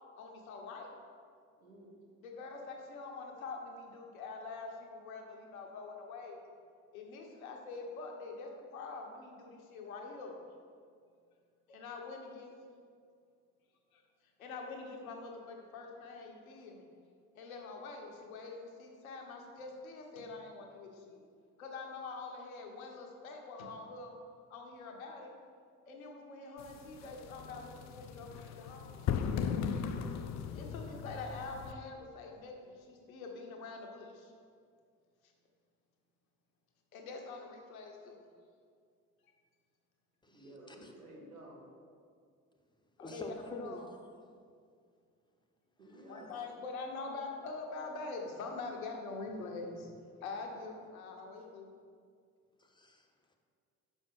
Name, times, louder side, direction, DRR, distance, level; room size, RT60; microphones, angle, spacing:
voice 1, 0.2-0.9 2.2-6.4 6.9-10.3 11.7-12.5 13.9-14.0 14.4-16.8 17.3-21.2 21.6-24.1 24.5-25.3 25.9-29.3 30.5-34.3 35.2-35.3 36.9-38.3 39.2-39.3 43.0-43.9 46.1-49.9 50.2-51.7, left 3 dB, 80° left, 1 dB, 0.9 m, -45 dB
voice 2, 1.6-2.0 40.3-41.7 45.8-46.5, right 1 dB, 90° right, -3 dB, 0.9 m, -53 dB
sound 1, 26.6-31.7, left 7 dB, 40° left, 0.5 m, -37 dB
voice 3, 40.2-40.9 43.0-43.8 45.9-46.3 52.6-53.3, left 1 dB, 10° left, 3 dB, 0.9 m, -48 dB
5.7 x 5.3 x 5.3 m, 2.2 s
figure-of-eight pair, 45°, 42 cm